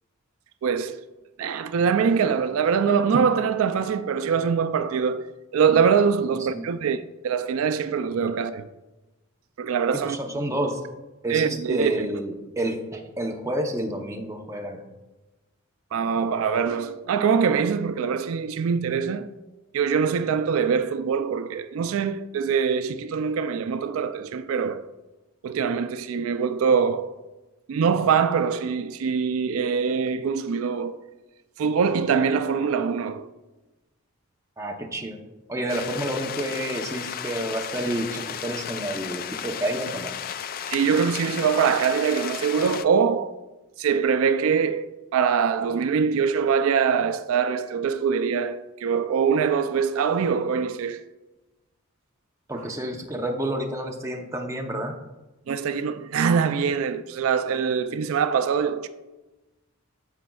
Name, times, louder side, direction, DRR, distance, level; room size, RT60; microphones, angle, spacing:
voice 1, 0.6-1.0 1.4-5.2 5.5-8.7 9.6-10.2 11.3-12.1 15.9-19.3 19.7-24.9 25.4-27.2 27.7-31.0 31.6-33.3 40.7-43.4 43.8-51.0 55.5-58.9, right 6 dB, 75° right, 0.4 m, -23 dB
voice 2, 10.0-10.8 11.2-14.8 34.6-35.2 35.5-40.1 52.5-55.0, right 1 dB, 15° right, 0.7 m, -29 dB
sound 1, 35.7-42.8, left 9 dB, 45° left, 0.3 m, -34 dB
14.5 x 5.1 x 2.3 m
head